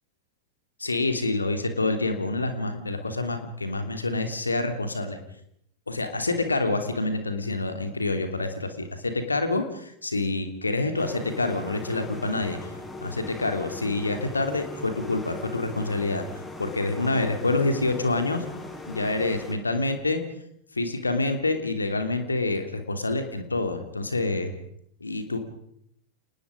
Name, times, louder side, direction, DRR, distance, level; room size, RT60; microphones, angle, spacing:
voice 1, 0.8-5.2 5.9-12.7 13.0-16.2 16.6-18.4 18.9-20.2 20.7-24.5 25.0-25.4, left 2 dB, 80° left, 7 dB, 3.0 m, -27 dB
sound 1, 11.0-19.5, left 2 dB, 15° left, 5.5 m, -39 dB
29.5 x 19.5 x 5.1 m, 0.72 s
figure-of-eight pair, 90°, 0 cm